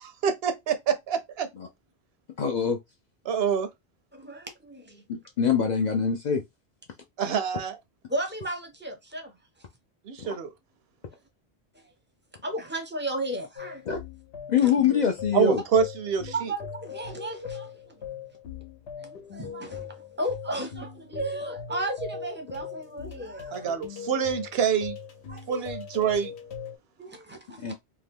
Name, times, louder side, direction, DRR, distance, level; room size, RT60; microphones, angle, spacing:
voice 1, 0.0-1.5 3.3-3.7 7.2-7.8 10.1-10.5 15.3-16.3 23.5-25.0 25.5-26.3, right 7 dB, 75° right, 0.8 m, -26 dB
voice 2, 2.4-2.8 5.1-6.4 10.2-10.4 13.9-14.0 14.5-15.6 27.6-27.7, left 7 dB, 55° left, 0.5 m, -24 dB
voice 3, 4.1-5.0 8.1-9.3 12.4-13.8 14.6-14.7 16.3-18.0 19.0-23.7 25.3-25.7 27.0-27.7, right 1 dB, 15° right, 0.5 m, -34 dB
sound 1, 13.6-26.8, left 7 dB, 80° left, 1.0 m, -40 dB
2.7 x 2.3 x 3.4 m
omnidirectional pair, 1.1 m